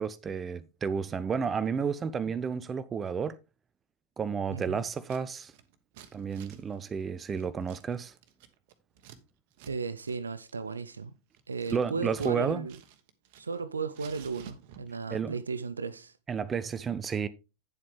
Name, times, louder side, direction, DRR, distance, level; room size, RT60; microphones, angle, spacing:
voice 1, 0.0-3.4 4.2-5.5 6.1-8.1 11.7-12.7 15.1-15.3 16.3-17.3, right 6 dB, 20° right, 0.5 m, -31 dB
voice 2, 4.5-4.8 9.6-11.1 11.5-12.8 13.4-16.2, right 5 dB, 75° right, 0.6 m, -35 dB
Scissors, 4.9-5.2 5.5-9.2 9.5-9.7 10.0-10.2 10.5-12.4 12.7-13.6 13.9-15.0, right 9 dB, 50° right, 1.2 m, -52 dB
9.6 x 7.6 x 3.4 m
figure-of-eight pair, 90°, 0 cm